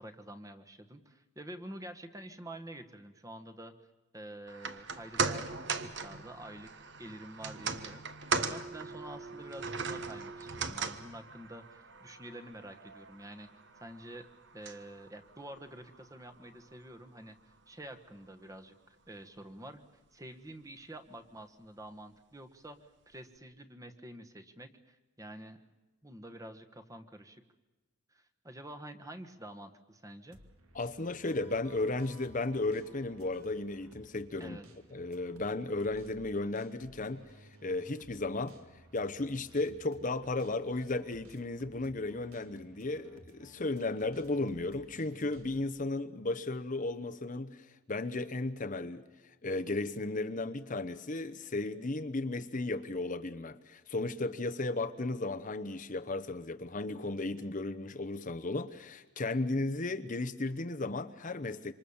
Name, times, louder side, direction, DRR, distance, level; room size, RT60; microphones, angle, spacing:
voice 1, 0.0-3.7 4.1-6.7 7.0-8.0 8.3-13.5 13.8-14.3 14.5-19.8 20.1-22.8 23.1-25.6 26.0-27.4 28.1-30.4 34.4-34.7, right 1 dB, 15° right, 8 dB, 1.3 m, -48 dB
sound 1, 4.5-16.9 17.2-17.3, right 4 dB, 55° right, 1.4 m, -39 dB
sound 2, 30.3-45.7, right 1 dB, 80° right, 2.6 m, -58 dB
voice 2, 30.7-34.6 34.9-38.6 38.9-61.7, left 2 dB, 35° left, 8 dB, 0.8 m, -35 dB
27.0 x 25.5 x 7.1 m, 1.1 s
head